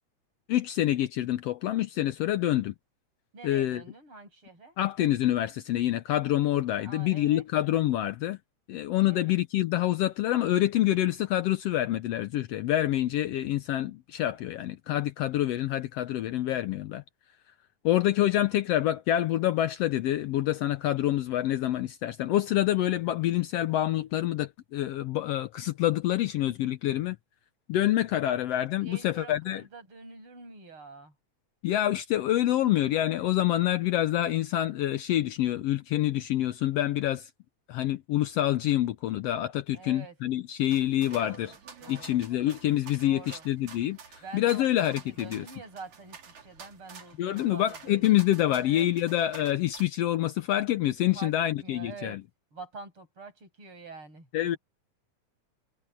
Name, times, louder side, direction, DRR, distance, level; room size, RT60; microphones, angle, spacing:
voice 1, 0.5-2.7 3.4-3.8 4.8-8.4 8.7-17.0 17.8-27.2 27.7-29.6 31.6-37.3 37.7-41.5 41.9-44.0 44.3-45.4 47.2-52.2 54.3-54.6, left 13 dB, 75° left, 1.5 m, -27 dB
voice 2, 3.3-4.8 6.7-7.4 9.0-9.2 28.7-31.1 39.7-40.2 41.1-41.5 41.8-42.2 43.0-43.5 44.2-48.1 48.5-48.9 51.1-52.2 52.5-54.6, right 4 dB, 45° right, 9.0 m, -46 dB
sound 1, 40.7-49.8, right 6 dB, 70° right, 4.5 m, -50 dB
omnidirectional pair, 3.4 m